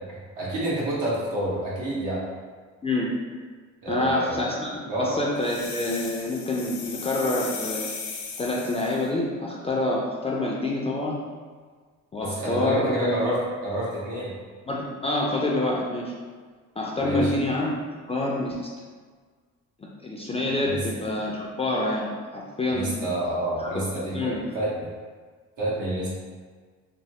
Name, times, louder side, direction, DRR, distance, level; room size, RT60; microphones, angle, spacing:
voice 1, 0.1-2.2 3.8-4.4 4.9-5.1 12.2-14.3 17.0-17.3 20.6-20.8 22.7-24.9 25.6-26.1, right 1 dB, 80° right, -7 dB, 1.2 m, -28 dB
voice 2, 2.8-3.1 3.9-7.9 8.4-11.2 12.1-13.2 14.7-16.1 16.8-17.7 18.1-18.6 20.0-23.0 23.6-24.5, left 2 dB, 20° left, -4 dB, 0.4 m, -27 dB
sound 1, 5.4-9.1, left 5 dB, 75° left, 0.5 m, -36 dB
3.1 x 2.0 x 2.8 m, 1.5 s
cardioid pair, 90°, 30 cm